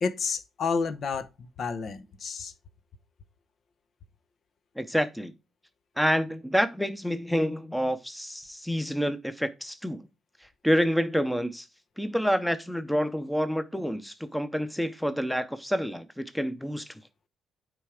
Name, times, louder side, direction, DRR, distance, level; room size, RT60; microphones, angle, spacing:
voice 1, 0.0-2.5, left 5 dB, 55° left, 0.8 m, -30 dB
voice 2, 4.8-5.3 6.0-10.1 10.6-11.7 12.0-16.9, equal, ahead, 0.8 m, -28 dB
9.0 x 3.5 x 5.0 m
cardioid pair, 90°, 0 cm